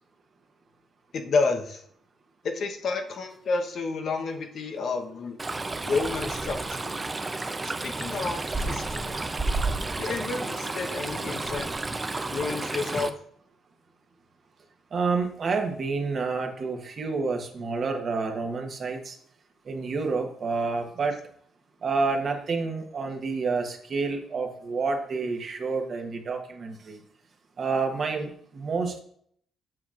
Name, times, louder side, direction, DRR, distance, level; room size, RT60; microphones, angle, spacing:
voice 1, 1.1-1.8 2.4-5.4 5.8-7.0 7.6-9.2 10.0-11.7 12.3-13.2, left 4 dB, 60° left, 3 dB, 0.9 m, -30 dB
Stream, 5.4-13.1, right 3 dB, 25° right, 0.5 m, -31 dB
voice 2, 14.9-19.1 19.7-21.1 21.8-27.0 27.6-29.0, right 4 dB, 50° right, 3 dB, 1.1 m, -29 dB
7.8 x 5.9 x 2.5 m, 0.64 s
cardioid pair, 90°, 0 cm